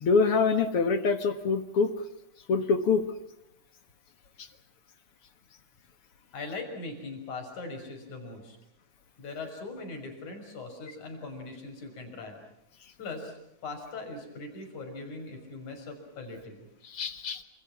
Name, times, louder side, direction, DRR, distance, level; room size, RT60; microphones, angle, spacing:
voice 1, 0.0-1.9 2.5-3.0 16.9-17.4, left 4 dB, 55° left, 9 dB, 2.2 m, -25 dB
voice 2, 6.3-8.6 9.2-12.4 13.0-13.3 13.6-16.7, left 3 dB, 85° left, 4 dB, 7.4 m, -40 dB
29.0 x 27.5 x 6.0 m, 0.81 s
omnidirectional pair, 3.3 m